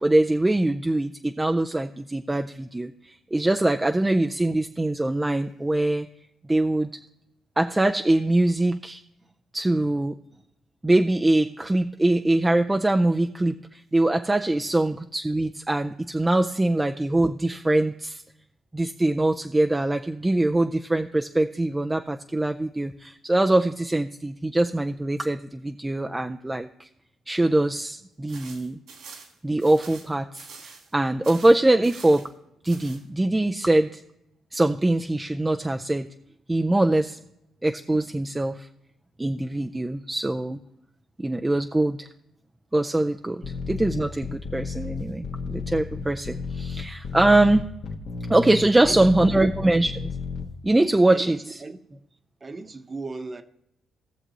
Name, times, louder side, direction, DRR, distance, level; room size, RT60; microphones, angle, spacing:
voice 1, 0.0-6.1 6.5-6.9 7.6-9.0 9.5-10.1 10.8-18.2 18.7-26.9 27.3-28.8 29.4-32.3 32.6-34.0 34.5-36.1 36.5-37.2 37.6-38.7 39.2-40.6 41.2-42.1 42.7-43.4 43.7-47.7 48.3-50.2 50.6-51.6, right 2 dB, 15° right, 0.4 m, -23 dB
sound 1, 28.3-30.9 31.2-32.3 32.6-33.0, right 5 dB, 80° right, 2.9 m, -46 dB
sound 2, 43.4-50.4, left 5 dB, 70° left, 1.3 m, -32 dB
voice 2, 48.7-49.4 51.1-52.0 52.4-53.4, right 3 dB, 30° right, 0.9 m, -37 dB
17.5 x 6.7 x 3.0 m
cardioid pair, 90°, 0 cm